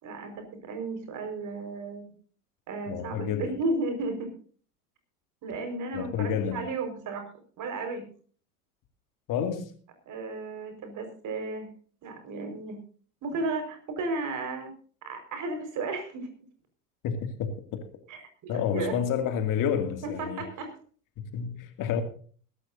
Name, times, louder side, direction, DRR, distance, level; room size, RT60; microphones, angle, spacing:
voice 1, 0.0-2.1 2.7-4.3 5.4-7.3 7.6-8.1 10.1-11.7 12.0-12.8 13.2-14.7 15.0-16.3 18.1-19.0 20.0-20.7, right 3 dB, 40° right, 4.9 m, -34 dB
voice 2, 2.9-3.5 5.9-6.6 9.3-9.7 17.0-17.8 18.5-20.4 21.2-22.0, left 8 dB, 40° left, 2.4 m, -29 dB
22.0 x 12.5 x 2.7 m
figure-of-eight pair, 80°, 47 cm